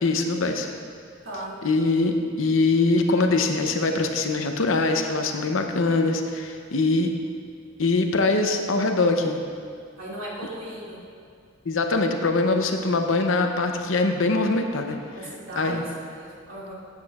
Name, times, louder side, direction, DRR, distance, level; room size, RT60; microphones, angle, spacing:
voice 1, 0.0-0.7 1.6-7.1 7.8-9.4 11.7-15.0 15.6-15.8, left 3 dB, 75° left, 5 dB, 0.7 m, -23 dB
voice 2, 1.2-1.6 10.0-11.0 15.1-16.7, right 1 dB, 90° right, -7 dB, 2.4 m, -37 dB
13.0 x 8.3 x 2.4 m, 2.3 s
head